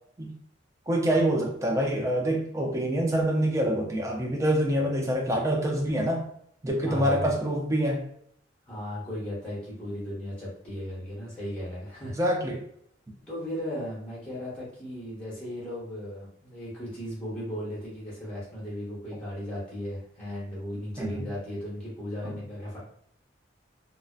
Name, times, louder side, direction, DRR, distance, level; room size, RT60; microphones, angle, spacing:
voice 1, 0.9-6.3 6.6-8.1 12.2-12.6 21.0-21.3 22.2-22.4, right 1 dB, 15° right, 0 dB, 0.4 m, -26 dB
voice 2, 6.8-7.3 8.7-12.2 13.2-22.8, equal, 5° left, -8 dB, 0.9 m, -36 dB
2.6 x 2.1 x 2.3 m, 0.67 s
head